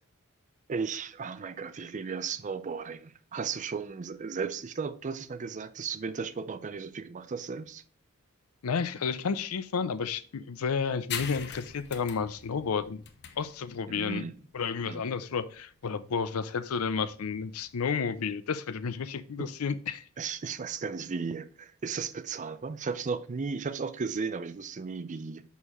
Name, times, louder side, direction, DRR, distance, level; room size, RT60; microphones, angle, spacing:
voice 1, 0.7-7.8 13.9-14.4 14.9-15.0 19.4-19.5 20.2-25.4, right 5 dB, 35° right, 0.4 m, -35 dB
voice 2, 8.6-13.0 13.4-14.2 14.5-20.0, left 5 dB, 85° left, 0.5 m, -31 dB
sound 1, 11.1-18.2, left 7 dB, 50° left, 0.8 m, -43 dB
6.3 x 5.5 x 3.0 m
head